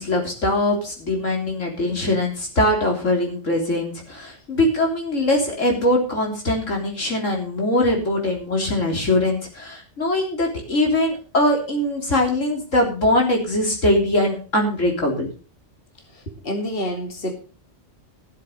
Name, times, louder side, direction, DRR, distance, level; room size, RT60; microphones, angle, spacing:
voice 1, 0.0-15.3, left 1 dB, 90° left, 0 dB, 3.9 m, -22 dB
voice 2, 16.1-17.3, equal, 50° left, 2 dB, 2.7 m, -28 dB
15.0 x 7.8 x 5.6 m, 0.37 s
omnidirectional pair, 1.3 m